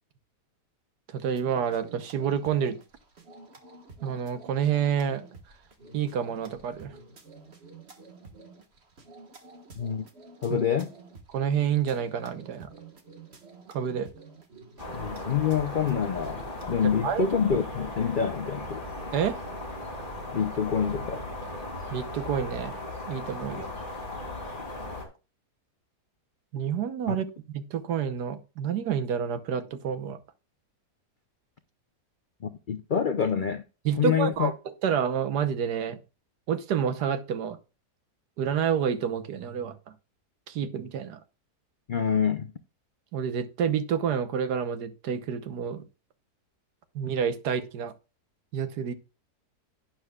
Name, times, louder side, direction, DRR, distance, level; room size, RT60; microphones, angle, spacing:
voice 1, 1.1-2.8 4.0-5.2 5.9-6.9 10.5-10.6 11.3-12.7 13.7-14.1 17.0-17.2 19.1-19.4 21.9-22.8 23.1-23.7 26.5-27.2 27.5-30.2 33.8-34.5 34.8-36.0 36.5-37.6 38.4-39.7 40.5-41.2 43.1-45.8 46.9-47.9 48.5-48.9, right 8 dB, 80° right, 1.5 m, -28 dB
sound 1, 1.2-16.7, right 4 dB, 40° right, 1.6 m, -50 dB
voice 2, 9.8-10.1 10.4-10.9 14.9-18.9 20.3-21.2 27.1-27.2 32.4-33.6 34.0-34.5 41.9-42.5, left 7 dB, 75° left, 0.4 m, -27 dB
sound 2, 14.8-25.0, left 1 dB, 30° left, 2.9 m, -37 dB
11.5 x 9.3 x 2.3 m
omnidirectional pair, 1.7 m